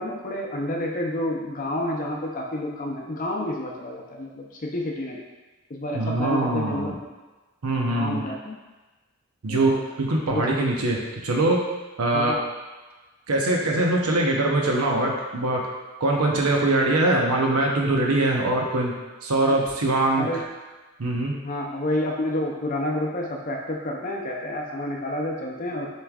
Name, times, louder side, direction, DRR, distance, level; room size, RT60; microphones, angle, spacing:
voice 1, 0.0-5.2 5.7-7.1 7.9-8.6 9.5-9.8 10.3-10.5 12.1-12.4 19.5-19.6 20.2-20.4 21.4-25.9, left 1 dB, 35° left, 0 dB, 0.5 m, -29 dB
voice 2, 5.9-6.9 7.6-8.2 9.4-11.6 12.0-12.3 13.3-15.6 16.0-18.9 19.2-20.3 21.0-21.3, right 2 dB, 90° right, -1 dB, 0.8 m, -22 dB
6.7 x 3.2 x 2.4 m, 1.2 s
head